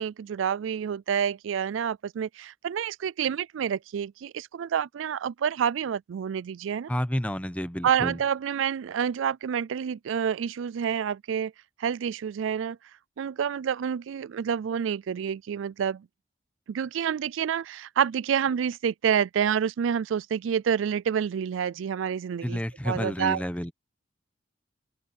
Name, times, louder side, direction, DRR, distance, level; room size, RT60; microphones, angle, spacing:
voice 1, 0.0-6.9 7.8-11.5 11.8-12.8 13.2-16.1 16.7-23.4, right 8 dB, 85° right, 0.3 m, -28 dB
voice 2, 6.9-8.2 22.4-23.7, equal, 5° left, 1.1 m, -30 dB
open air
head